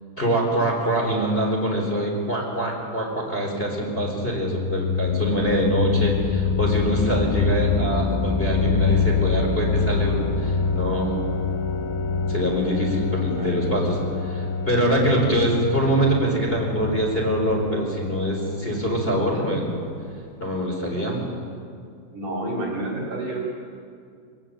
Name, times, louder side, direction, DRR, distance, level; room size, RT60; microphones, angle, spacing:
voice 1, 0.2-11.2 12.3-14.0 14.3-19.7 20.4-21.2, right 1 dB, 10° left, -1 dB, 4.1 m, -24 dB
sound 1, 3.6-20.3, left 5 dB, 70° left, 4.3 m, -26 dB
voice 2, 13.4-13.9 22.1-23.4, right 1 dB, 50° right, -1 dB, 3.3 m, -30 dB
24.5 x 20.0 x 8.3 m, 2.3 s
omnidirectional pair, 5.6 m